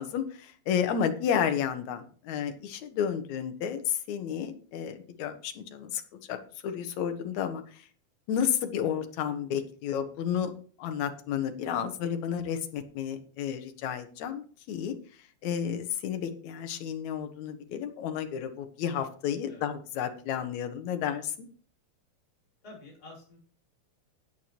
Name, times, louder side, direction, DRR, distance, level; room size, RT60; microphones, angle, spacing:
voice 1, 0.0-6.0 6.3-6.4 6.6-7.8 8.3-10.5 10.8-15.0 15.4-21.5, left 8 dB, 65° left, 7 dB, 2.3 m, -31 dB
voice 2, 22.6-23.4, left 2 dB, 25° left, -4 dB, 5.4 m, -49 dB
14.0 x 9.2 x 3.0 m, 0.43 s
omnidirectional pair, 4.0 m